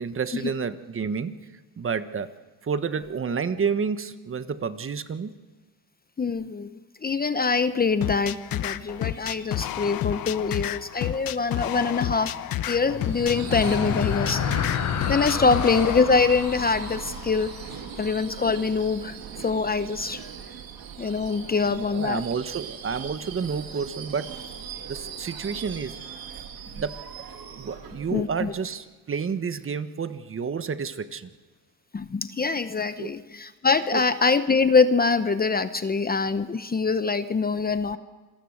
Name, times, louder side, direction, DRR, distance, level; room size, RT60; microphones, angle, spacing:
voice 1, 0.0-1.3 1.8-2.3 2.6-5.3 15.4-15.6 21.6-24.4 24.9-26.0 26.7-27.2 27.6-31.3 33.0-33.1 33.9-34.0, right 6 dB, 35° right, 11 dB, 1.4 m, -30 dB
voice 2, 6.2-6.7 7.0-12.4 12.7-14.4 15.1-17.5 18.0-20.3 21.0-22.2 28.1-28.5 31.9-38.0, left 4 dB, 25° left, 11 dB, 0.9 m, -24 dB
sound 1, 8.0-16.0, left 12 dB, 65° left, 1.1 m, -30 dB
sound 2, 12.8-18.4, left 8 dB, 45° left, 1.4 m, -31 dB
Subway metro underground / Screech, 12.9-28.9, right 7 dB, 65° right, 2.7 m, -40 dB
27.0 x 22.0 x 6.6 m, 1.3 s
cardioid pair, 100°, 39 cm